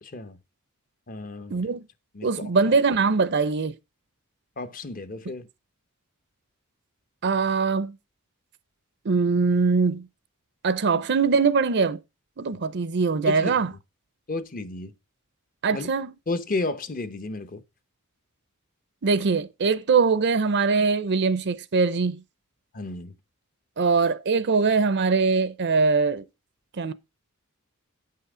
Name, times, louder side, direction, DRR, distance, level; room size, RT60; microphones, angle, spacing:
voice 1, 0.0-0.4 1.1-1.6 2.1-2.8 4.6-5.5 13.3-13.8 14.3-14.9 15.7-15.9 16.3-17.6 22.7-23.1, left 2 dB, 40° left, 0.8 m, -32 dB
voice 2, 1.5-1.8 2.2-3.8 7.2-8.0 9.0-10.1 10.6-12.0 12.4-13.7 15.6-16.1 19.0-22.2 23.8-26.3 26.8-26.9, right 4 dB, 50° right, 0.6 m, -22 dB
8.8 x 5.6 x 5.0 m
head